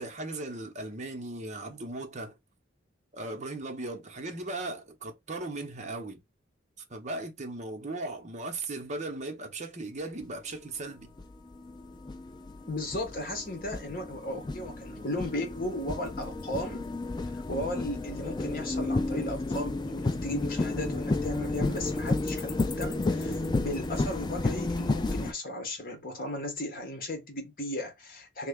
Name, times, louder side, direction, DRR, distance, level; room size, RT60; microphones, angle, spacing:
voice 1, 0.0-2.3 3.1-6.2 6.9-11.1, right 2 dB, 40° right, 0.8 m, -37 dB
sound 1, 10.2-10.3 11.0-25.3, left 2 dB, 25° left, 0.4 m, -32 dB
voice 2, 12.6-16.9 17.3-28.5, left 1 dB, 50° left, 1.3 m, -36 dB
3.2 x 2.3 x 3.5 m
head